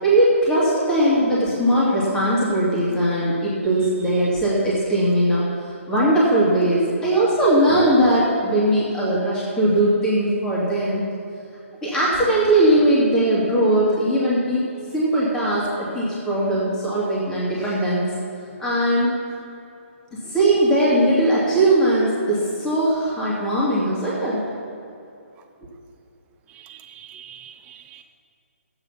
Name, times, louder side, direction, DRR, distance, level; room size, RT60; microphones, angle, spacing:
voice 1, 0.0-5.5 5.9-11.0 11.8-14.6 14.9-18.1 18.6-19.1 20.1-24.4, right 1 dB, 10° left, -8 dB, 2.6 m, -19 dB
voice 2, 26.5-28.0, right 10 dB, 15° right, 7 dB, 0.6 m, -44 dB
12.5 x 8.8 x 5.8 m, 2.6 s
hypercardioid pair, 150°, 8 cm